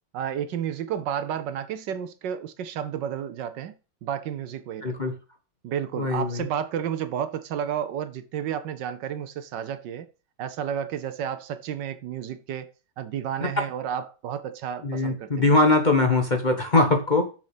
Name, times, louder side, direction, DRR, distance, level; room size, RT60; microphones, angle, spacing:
voice 1, 0.1-3.7 4.0-5.0 5.6-10.1 10.4-15.5, right 9 dB, 70° right, 1.3 m, -31 dB
voice 2, 4.8-5.1 6.0-6.4 14.8-17.3, left 2 dB, 30° left, 1.1 m, -21 dB
6.9 x 6.5 x 5.9 m
omnidirectional pair, 2.1 m